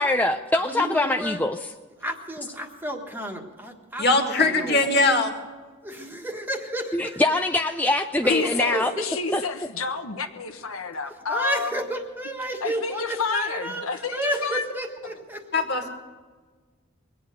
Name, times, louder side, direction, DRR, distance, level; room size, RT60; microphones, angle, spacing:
voice 1, 0.0-1.6 6.9-8.9 9.3-9.4, left 2 dB, 10° left, 0.4 m, -23 dB
voice 2, 0.6-1.4 2.0-5.0 5.8-7.2 8.2-9.1 11.3-15.6, right 1 dB, 10° right, 1.5 m, -31 dB
voice 3, 4.0-5.4 15.5-15.9, left 2 dB, 50° left, 2.0 m, -21 dB
voice 4, 8.3-11.7 12.6-14.6, left 4 dB, 85° left, 1.2 m, -29 dB
22.5 x 8.9 x 6.6 m
head